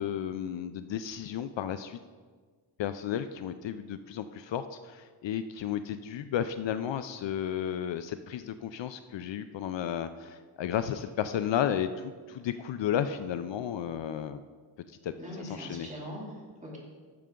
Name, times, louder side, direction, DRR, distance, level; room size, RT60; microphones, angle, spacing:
voice 1, 0.0-2.0 2.8-14.4 14.9-15.1 15.5-15.9, left 9 dB, 65° left, 11 dB, 0.5 m, -33 dB
voice 2, 15.2-16.8, equal, 15° right, -4 dB, 2.7 m, -42 dB
12.5 x 6.8 x 3.7 m, 1.5 s
wide cardioid pair, 125°, 47 cm